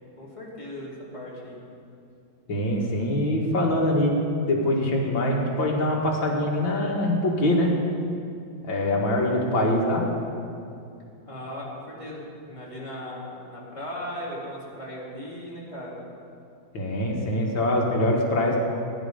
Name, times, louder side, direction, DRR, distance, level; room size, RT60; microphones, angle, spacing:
voice 1, 0.2-1.6 11.2-16.0, equal, 15° left, -6 dB, 3.2 m, -37 dB
voice 2, 2.5-4.2 4.5-7.7 8.7-10.0 16.7-18.6, left 1 dB, 75° left, -2 dB, 2.9 m, -23 dB
20.5 x 11.0 x 5.2 m, 2.5 s
omnidirectional pair, 2.1 m